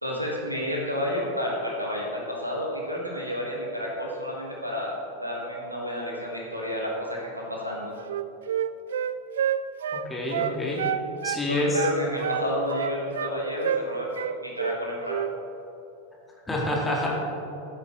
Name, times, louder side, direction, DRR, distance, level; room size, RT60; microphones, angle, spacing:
voice 1, 0.0-7.9 11.5-14.1 14.4-15.4, equal, 90° right, -2 dB, 1.8 m, -30 dB
Wind instrument woodwind instrument, 8.0-11.4 11.7-13.3 13.6-13.9 14.2-14.8 15.1-15.3, right 9 dB, 60° right, 0.3 m, -28 dB
voice 2, 10.0-10.8 11.2-11.8 16.5-17.1, left 1 dB, 10° left, -3 dB, 2.2 m, -27 dB
14.5 x 8.0 x 3.2 m, 3.0 s
figure-of-eight pair, 90°, 0 cm